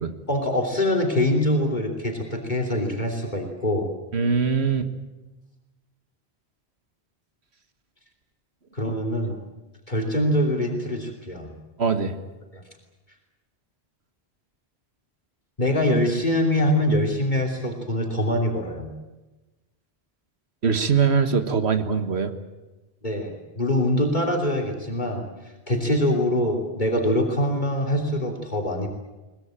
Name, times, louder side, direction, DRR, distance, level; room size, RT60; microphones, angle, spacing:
voice 1, 0.3-3.9 8.7-9.4 9.9-11.5 12.5-12.6 15.6-18.9 23.0-25.2 25.7-28.9, left 1 dB, 45° left, 3 dB, 3.2 m, -24 dB
voice 2, 4.1-4.9 8.8-8.9 11.8-12.1 20.6-22.3, right 5 dB, 85° right, 9 dB, 1.8 m, -22 dB
22.5 x 20.0 x 8.9 m, 1.1 s
omnidirectional pair, 1.1 m